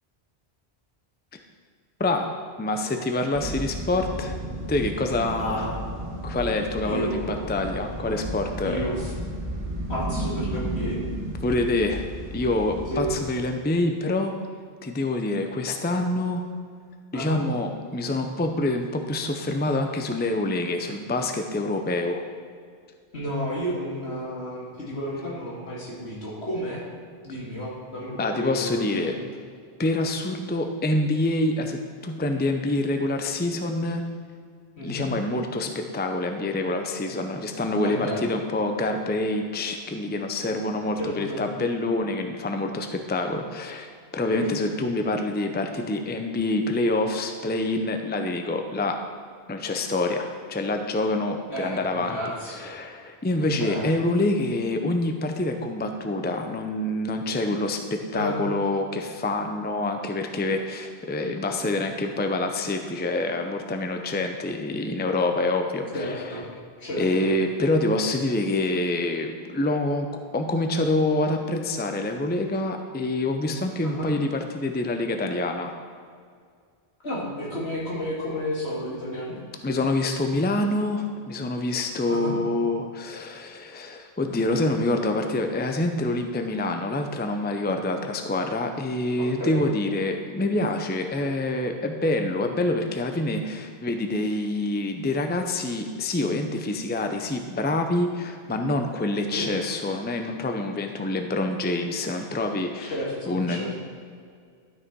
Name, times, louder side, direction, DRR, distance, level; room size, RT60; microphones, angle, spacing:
voice 1, 2.0-4.4 4.7-5.7 6.2-9.0 11.4-12.1 12.3-14.3 14.8-16.4 17.1-22.2 28.2-29.1 29.8-34.1 34.8-49.0 49.5-52.2 52.5-66.2 67.0-70.1 70.3-75.8 79.6-102.9 103.3-103.7, left 2 dB, 10° left, 5 dB, 0.5 m, -26 dB
sound 1, 3.3-13.2, right 1 dB, 60° right, 2.0 m, -33 dB
voice 2, 5.4-5.8 6.8-7.5 8.6-9.1 9.9-11.0 12.9-13.1 17.1-17.4 23.1-26.8 27.2-29.2 34.8-35.1 37.8-38.2 41.0-41.4 44.3-44.7 51.5-52.7 53.4-53.9 58.1-58.4 65.9-66.5 66.8-67.3 73.8-74.1 77.0-79.4 82.1-82.4 89.2-89.6 99.3-99.5 102.9-103.7, equal, 80° left, -5 dB, 2.9 m, -32 dB
12.0 x 6.4 x 4.6 m, 2.1 s
omnidirectional pair, 1.1 m